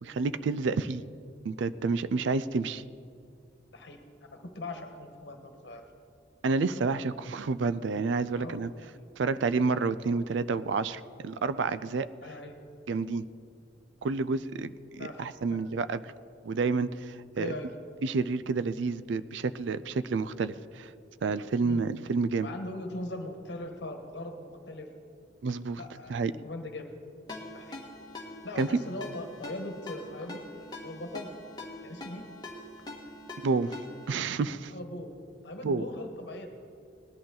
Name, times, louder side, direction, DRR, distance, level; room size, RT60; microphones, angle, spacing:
voice 1, 0.0-1.0 1.4-2.8 6.4-8.7 9.2-12.1 12.9-13.3 14.0-16.1 16.4-17.5 18.0-20.9 21.2-22.5 25.4-25.8 26.1-26.3 28.6-28.7 33.4-33.7 34.1-34.7 35.6-35.8, right 4 dB, 75° right, 15 dB, 0.4 m, -29 dB
voice 2, 3.7-5.8 8.4-8.6 8.9-9.0 12.2-12.6 15.0-15.2 15.5-15.6 17.4-17.7 21.6-21.8 22.4-24.9 25.7-26.9 27.5-27.8 28.4-31.3 31.8-32.2 34.7-35.1 35.4-36.5, left 1 dB, 65° left, 4 dB, 1.4 m, -40 dB
Ringtone, 27.3-34.2, left 1 dB, 20° left, 1.5 m, -44 dB
18.5 x 11.0 x 3.9 m, 2.3 s
head